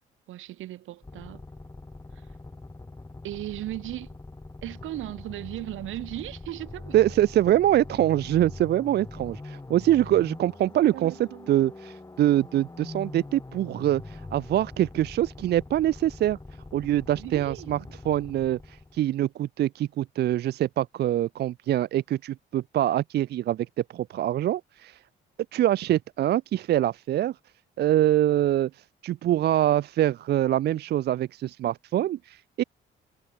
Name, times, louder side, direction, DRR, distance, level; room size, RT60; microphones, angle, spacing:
voice 1, 0.3-1.4 2.1-2.3 3.2-4.1 4.6-7.0 10.6-11.5 17.1-17.9, right 15 dB, 85° right, 3.2 m, -37 dB
sound 1, 1.0-19.1, left 2 dB, 15° left, 6.2 m, -43 dB
voice 2, 6.9-16.4 16.7-17.8 18.0-23.7 23.9-25.0 25.5-27.3 27.8-32.6, right 13 dB, 55° right, 0.4 m, -24 dB
cardioid pair, 90°, 20 cm